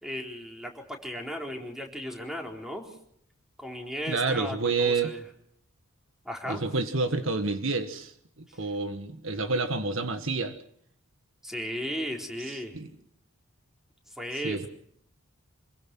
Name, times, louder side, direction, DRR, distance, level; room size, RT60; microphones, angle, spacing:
voice 1, 0.0-2.9 3.6-5.2 6.2-6.6 11.4-12.8 14.2-14.6, equal, ahead, 2 dB, 4.1 m, -35 dB
voice 2, 4.1-5.1 6.5-8.1 8.6-10.6 12.5-12.9 14.4-14.7, right 3 dB, 60° right, 8 dB, 1.7 m, -29 dB
27.0 x 22.0 x 6.2 m, 0.67 s
head